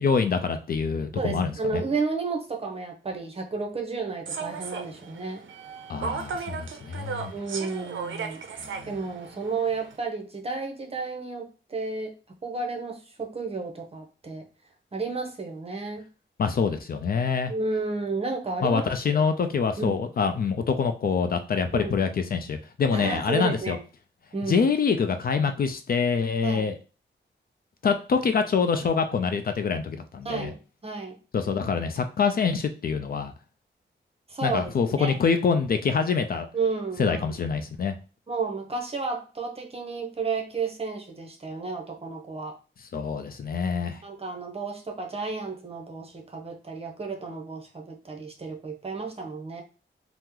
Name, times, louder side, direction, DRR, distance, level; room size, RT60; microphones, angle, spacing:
voice 1, 0.0-1.8 5.9-7.3 8.7-8.8 16.4-17.5 18.6-23.8 24.5-26.7 27.8-30.5 31.3-33.3 34.4-36.5 37.0-38.0 42.9-44.0, left 5 dB, 50° left, 7 dB, 0.4 m, -25 dB
voice 2, 1.2-5.5 7.3-14.5 14.9-16.1 17.5-18.8 19.1-19.2 19.8-20.0 21.7-22.0 22.9-23.8 24.3-24.7 26.4-26.7 30.2-31.2 34.3-34.6 35.0-35.1 36.5-37.2 38.3-42.6 44.0-49.6, right 4 dB, 30° right, 2 dB, 0.7 m, -32 dB
Human voice / Subway metro underground, 4.3-10.0, right 5 dB, 75° right, 0.5 m, -36 dB
2.9 x 2.0 x 3.6 m, 0.35 s
wide cardioid pair, 100°, 20 cm